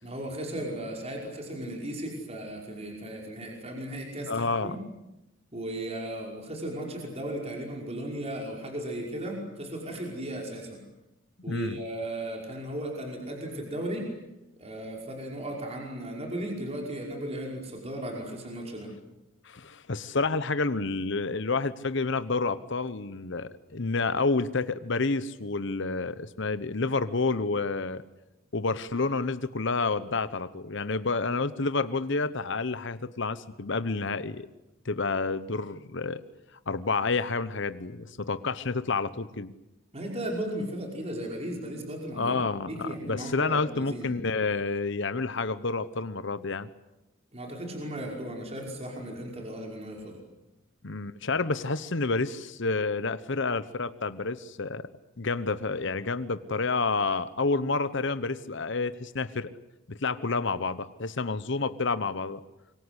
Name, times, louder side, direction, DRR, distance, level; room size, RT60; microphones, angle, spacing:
voice 1, 0.0-4.8 5.5-10.8 11.4-14.0 14.6-18.9 39.9-42.4 42.7-44.1 47.3-50.2, right 1 dB, 30° right, 0 dB, 5.4 m, -36 dB
voice 2, 4.3-4.8 11.5-11.8 19.4-28.0 28.5-34.5 34.8-36.2 36.7-39.5 42.2-46.7 50.8-54.8 55.2-59.5 59.9-62.4, left 3 dB, 60° left, 13 dB, 1.0 m, -29 dB
26.5 x 24.0 x 8.1 m, 0.93 s
head